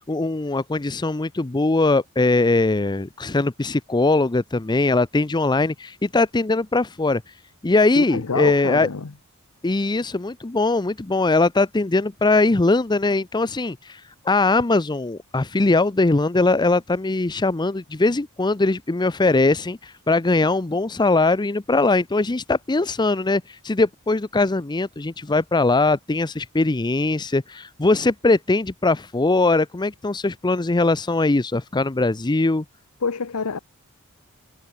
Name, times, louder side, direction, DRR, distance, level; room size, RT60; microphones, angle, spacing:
voice 1, 0.1-7.2 7.6-8.9 9.6-32.6, left 2 dB, 20° left, 0.6 m, -21 dB
voice 2, 8.0-9.1 33.0-33.6, left 5 dB, 85° left, 0.8 m, -26 dB
head